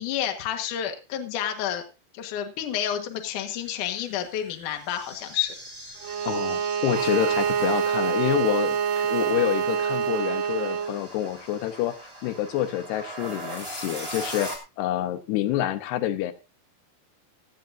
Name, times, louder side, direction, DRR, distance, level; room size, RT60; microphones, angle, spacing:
voice 1, 0.0-1.8 2.1-5.5, left 10 dB, 60° left, 5 dB, 2.6 m, -30 dB
sound 1, 3.7-14.6, right 1 dB, 10° right, 2.1 m, -40 dB
Bowed string instrument, 6.0-11.0, right 7 dB, 75° right, 2.2 m, -26 dB
voice 2, 6.2-12.0 12.2-16.3, left 12 dB, 80° left, 10 dB, 3.0 m, -27 dB
16.5 x 13.0 x 2.6 m, 0.28 s
omnidirectional pair, 4.8 m